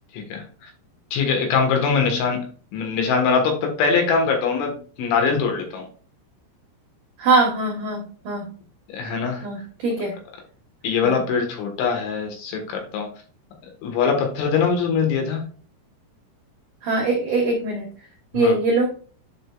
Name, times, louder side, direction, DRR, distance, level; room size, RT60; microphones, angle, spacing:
voice 1, 0.1-0.7 1.1-5.9 8.9-9.5 10.8-13.1 13.8-15.5 18.3-18.6, left 5 dB, 70° left, 3 dB, 3.6 m, -22 dB
voice 2, 7.2-8.5 9.4-10.2 11.0-11.2 16.8-17.9 18.3-18.9, right 3 dB, 85° right, 0 dB, 1.8 m, -22 dB
10.5 x 5.2 x 2.3 m, 0.41 s
omnidirectional pair, 5.9 m